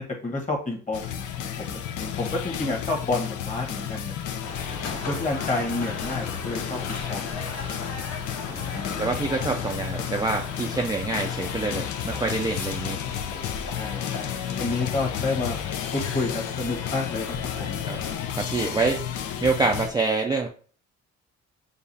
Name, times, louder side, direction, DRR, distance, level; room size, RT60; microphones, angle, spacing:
voice 1, 0.0-4.2 4.7-8.2 8.5-8.9 13.8-15.6 15.9-17.8, left 3 dB, 25° left, 0 dB, 1.3 m, -30 dB
sound 1, 0.9-19.9, left 9 dB, 75° left, 0.6 m, -32 dB
sound 2, 4.4-18.1, left 3 dB, 50° left, 1.4 m, -38 dB
voice 2, 9.0-13.0 17.9-18.0 18.4-19.0 19.4-20.5, right 3 dB, 15° right, 1 dB, 0.4 m, -26 dB
6.7 x 2.4 x 2.7 m, 0.42 s
cardioid pair, 90°, 30 cm